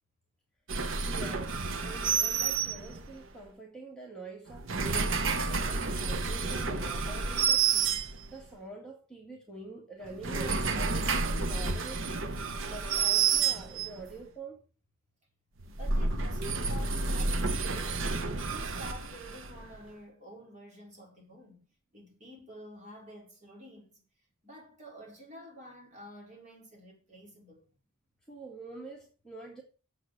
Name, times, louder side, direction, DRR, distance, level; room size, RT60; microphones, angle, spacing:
sound 1, 0.7-3.2 4.5-8.5 10.0-14.1 15.6-19.8, right 5 dB, 60° right, 0.9 m, -30 dB
voice 1, 1.1-14.6 28.3-29.6, right 3 dB, 5° left, 2.0 m, -46 dB
voice 2, 15.7-18.2 18.5-21.6 21.9-24.1 24.4-27.6, equal, 30° right, 4.5 m, -49 dB
8.1 x 7.4 x 7.7 m
head